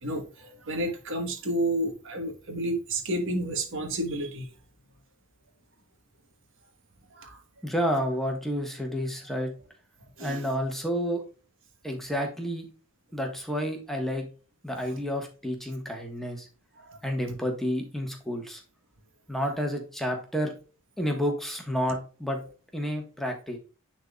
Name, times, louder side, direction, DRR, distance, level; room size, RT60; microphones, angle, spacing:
voice 1, 0.0-4.5 7.1-7.4 10.2-10.5 16.8-17.0 21.9-22.0, right 1 dB, 65° right, 1.4 m, -31 dB
voice 2, 7.6-9.5 10.2-11.2 11.8-12.6 13.1-14.3 14.6-16.5 17.0-18.6 19.3-20.5 21.0-22.4 22.7-23.6, equal, ahead, 1.4 m, -30 dB
10.0 x 4.1 x 2.3 m
head